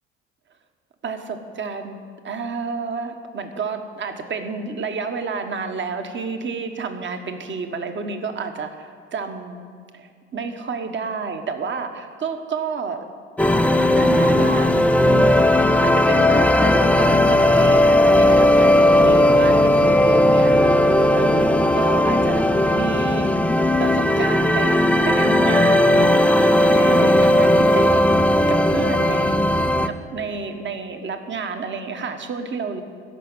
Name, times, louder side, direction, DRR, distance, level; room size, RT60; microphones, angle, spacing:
voice 1, 1.0-9.6 9.9-13.0 13.9-14.7 15.0-23.3 23.8-26.1 26.6-28.0 28.5-32.8, right 5 dB, 30° right, 7 dB, 1.4 m, -30 dB
sound 1, 13.4-29.9, left 1 dB, 5° left, 0.6 m, -16 dB
14.5 x 5.9 x 9.1 m, 2.2 s
figure-of-eight pair, 60°, 35 cm